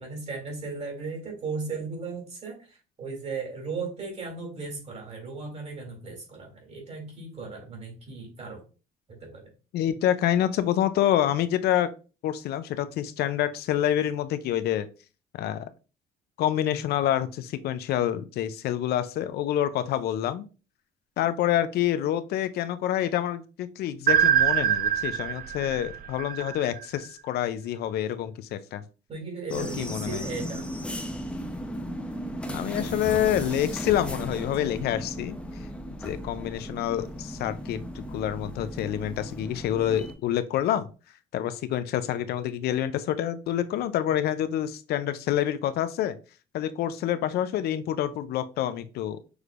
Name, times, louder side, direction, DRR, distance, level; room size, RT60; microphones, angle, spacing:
voice 1, 0.0-8.6 9.1-9.5 29.1-30.7, right 4 dB, 40° right, 1 dB, 2.5 m, -36 dB
voice 2, 9.7-11.9 12.2-14.9 15.3-15.7 16.4-20.5 21.2-28.8 29.5-30.2 32.5-35.4 36.0-40.9 41.3-46.2 46.5-49.2, left 11 dB, 70° left, 12 dB, 0.5 m, -27 dB
sound 1, 24.1-27.0, right 10 dB, 60° right, 0.5 m, -24 dB
sound 2, 29.5-40.1, equal, 5° left, 0.8 m, -36 dB
6.2 x 3.3 x 2.5 m, 0.33 s
cardioid pair, 110°, 17 cm